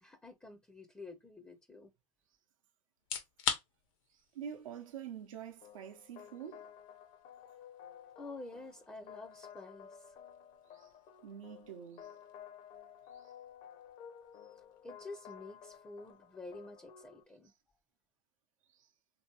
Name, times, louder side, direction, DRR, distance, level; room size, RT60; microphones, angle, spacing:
voice 1, 0.0-1.9 8.2-10.2 14.4-17.5, left 2 dB, 5° left, 0.4 m, -49 dB
sound 1, 2.9-17.8, left 8 dB, 75° left, 0.8 m, -47 dB
voice 2, 4.1-6.6 10.7-10.9 11.2-12.2 13.1-13.3 17.4-17.5 18.7-18.9, right 8 dB, 90° right, 0.6 m, -47 dB
sound 2, 5.6-17.2, left 8 dB, 50° left, 0.6 m, -54 dB
3.1 x 2.7 x 2.9 m
hypercardioid pair, 105°, 17 cm